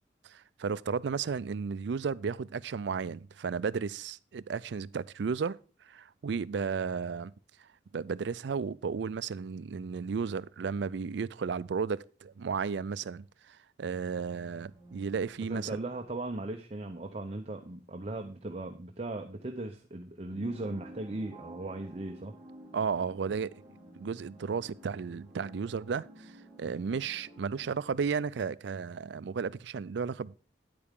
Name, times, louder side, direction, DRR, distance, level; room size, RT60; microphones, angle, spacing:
voice 1, 0.2-5.6 5.9-7.3 7.6-7.7 7.9-15.8 22.7-23.6 23.9-30.4, right 5 dB, 65° right, 0.4 m, -34 dB
sound 1, 14.0-17.3 17.7-17.8 20.3-27.8, right 1 dB, 10° right, 3.4 m, -53 dB
voice 2, 15.5-22.3, right 2 dB, 35° right, 0.7 m, -38 dB
9.8 x 8.5 x 3.6 m
head